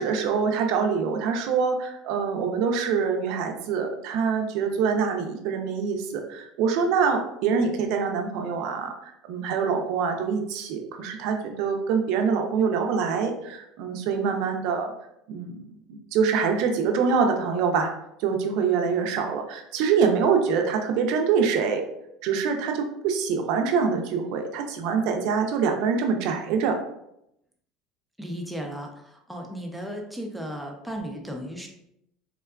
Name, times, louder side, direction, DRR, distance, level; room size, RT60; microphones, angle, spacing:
voice 1, 0.0-14.9 15.3-17.9 18.2-21.8 22.2-26.8, right 6 dB, 65° right, 4 dB, 0.5 m, -25 dB
voice 2, 28.2-31.7, equal, 5° right, 2 dB, 0.5 m, -35 dB
3.6 x 2.2 x 2.3 m, 0.80 s
cardioid pair, 140°, 0 cm